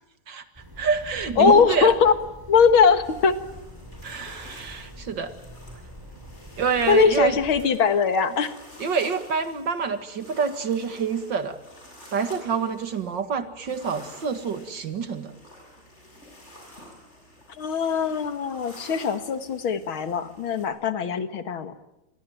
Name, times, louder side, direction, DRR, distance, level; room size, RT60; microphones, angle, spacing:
sound 1, 0.5-7.7, equal, 10° right, 7.8 m, -44 dB
voice 1, 0.8-1.9 4.0-5.3 6.6-7.4 8.8-11.6 12.1-15.3, right 6 dB, 60° right, 10 dB, 2.4 m, -27 dB
voice 2, 1.4-2.1 2.5-3.3 6.9-8.5 17.6-21.7, left 6 dB, 75° left, 10 dB, 2.4 m, -20 dB
sound 2, 3.0-20.7, left 1 dB, 30° left, 8.0 m, -49 dB
28.0 x 22.5 x 9.2 m, 0.90 s
omnidirectional pair, 2.3 m